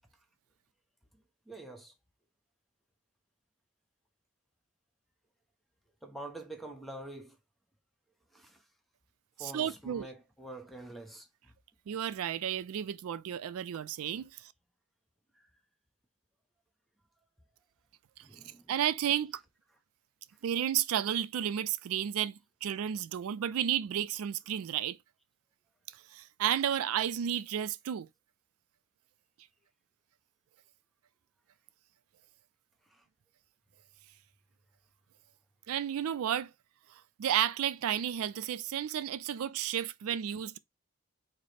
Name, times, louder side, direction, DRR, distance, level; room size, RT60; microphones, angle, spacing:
voice 1, 1.1-1.9 6.0-7.4 8.3-8.7 9.4-11.5 15.3-15.5 18.2-18.9 19.4-19.8 32.9-33.1, right 1 dB, ahead, 0.6 m, -47 dB
voice 2, 9.4-10.1 11.9-14.5 18.2-18.3 18.7-19.4 20.4-25.0 26.1-28.1 35.7-36.5 37.2-40.6, right 10 dB, 75° right, 0.3 m, -32 dB
4.7 x 2.0 x 4.1 m
head